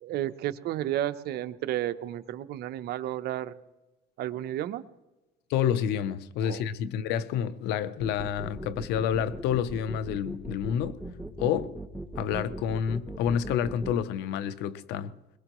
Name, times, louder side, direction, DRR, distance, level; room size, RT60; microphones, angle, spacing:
voice 1, 0.0-3.5 4.2-4.8 6.4-6.6, right 13 dB, 70° right, 0.8 m, -32 dB
voice 2, 5.5-11.0 11.4-11.7 12.2-15.1, left 9 dB, 90° left, 0.7 m, -29 dB
sound 1, 8.0-13.9, right 1 dB, ahead, 1.3 m, -39 dB
22.0 x 21.5 x 3.1 m
cardioid pair, 110°, 17 cm